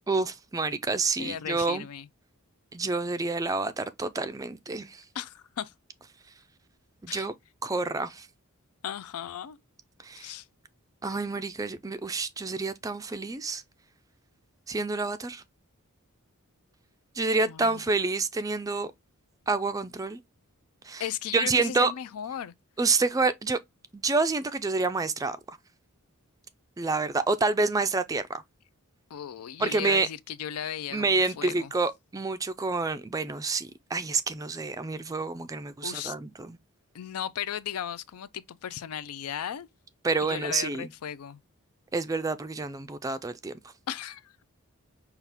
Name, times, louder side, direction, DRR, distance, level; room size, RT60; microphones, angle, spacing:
voice 1, 0.1-1.8 2.7-5.0 7.0-7.3 7.6-8.3 10.0-10.3 11.0-13.6 14.7-15.4 17.2-18.9 19.5-20.2 20.8-21.0 21.3-21.9 22.8-23.6 23.9-25.6 26.8-28.4 29.6-30.1 30.9-36.6 40.0-40.9 41.9-43.5, right 3 dB, 15° right, 0.3 m, -28 dB
voice 2, 1.2-2.1 5.1-5.7 7.1-7.3 8.8-9.6 10.2-10.5 17.4-17.8 21.0-22.5 29.1-31.7 35.8-36.1 36.9-39.7 40.2-41.4 43.9-44.4, left 9 dB, 80° left, 0.4 m, -36 dB
5.7 x 2.4 x 3.4 m
head